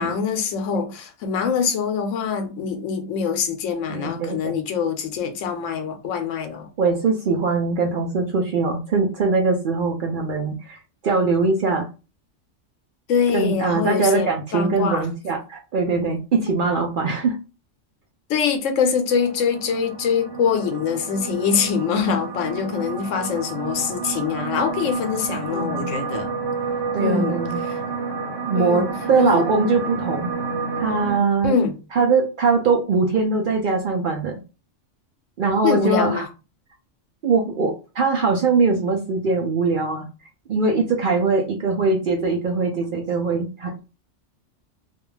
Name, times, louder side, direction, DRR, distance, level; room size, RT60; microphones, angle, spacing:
voice 1, 0.0-6.7 13.1-15.1 18.3-26.3 27.0-27.8 28.6-28.9 29.2-29.4 31.4-31.8 35.6-36.3, left 6 dB, 80° left, 1.0 m, -24 dB
voice 2, 3.9-4.6 6.8-11.9 13.3-17.4 22.0-22.1 25.5-25.9 26.9-27.6 28.4-30.3 30.8-31.6 31.9-34.3 35.4-36.3 37.2-40.0 40.5-43.8, right 4 dB, 60° right, 0.5 m, -22 dB
sound 1, 19.1-31.2, right 4 dB, 90° right, 1.1 m, -30 dB
2.4 x 2.3 x 3.1 m
omnidirectional pair, 1.3 m